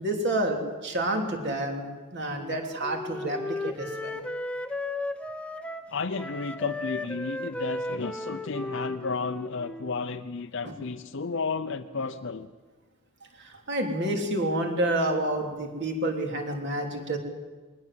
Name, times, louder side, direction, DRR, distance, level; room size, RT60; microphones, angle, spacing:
voice 1, 0.0-1.9 2.1-4.2 10.6-10.7 13.3-17.2, right 1 dB, 50° right, 3 dB, 3.4 m, -29 dB
Wind instrument woodwind instrument, 2.4-10.0, left 2 dB, 5° left, 0.8 m, -35 dB
voice 2, 5.9-12.5, left 4 dB, 55° left, 6 dB, 0.7 m, -32 dB
22.0 x 19.0 x 7.7 m, 1.3 s
head